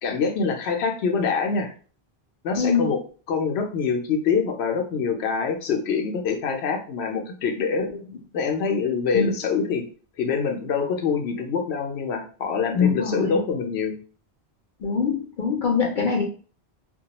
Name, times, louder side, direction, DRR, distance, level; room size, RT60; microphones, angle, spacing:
voice 1, 0.0-1.7 2.4-3.0 3.3-7.9 8.3-9.8 10.2-13.9, left 5 dB, 85° left, 3 dB, 0.9 m, -25 dB
voice 2, 2.6-2.9 9.1-9.3 12.7-13.3 14.8-16.3, left 5 dB, 60° left, 0 dB, 0.6 m, -23 dB
2.3 x 2.2 x 2.8 m, 0.39 s
omnidirectional pair, 1.1 m